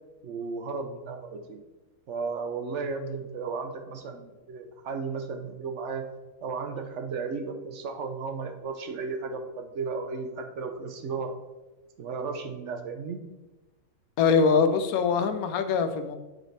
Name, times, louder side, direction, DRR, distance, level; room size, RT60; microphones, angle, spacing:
voice 1, 0.2-1.6 2.1-6.0 6.4-11.4 12.0-13.2, right 4 dB, 65° right, 6 dB, 0.8 m, -34 dB
voice 2, 14.2-16.2, left 5 dB, 85° left, 8 dB, 1.1 m, -23 dB
9.0 x 4.1 x 3.2 m, 1.1 s
omnidirectional pair, 1.5 m